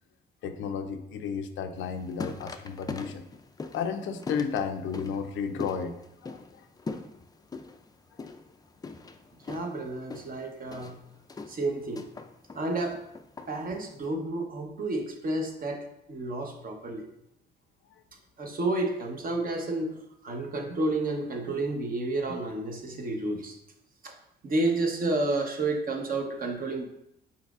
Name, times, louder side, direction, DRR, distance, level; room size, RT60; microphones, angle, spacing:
voice 1, 0.4-3.3 3.7-5.9 6.2-6.4, left 6 dB, 75° left, 8 dB, 0.5 m, -32 dB
sound 1, 1.8-14.1, left 4 dB, 20° left, 0.4 m, -42 dB
voice 2, 9.5-11.0 11.5-12.1 12.5-13.0 13.5-17.1 18.4-23.6 24.0-24.1 24.4-26.8, right 2 dB, 45° right, 3 dB, 0.9 m, -31 dB
5.6 x 3.9 x 2.4 m, 0.79 s
cardioid pair, 90°, 20 cm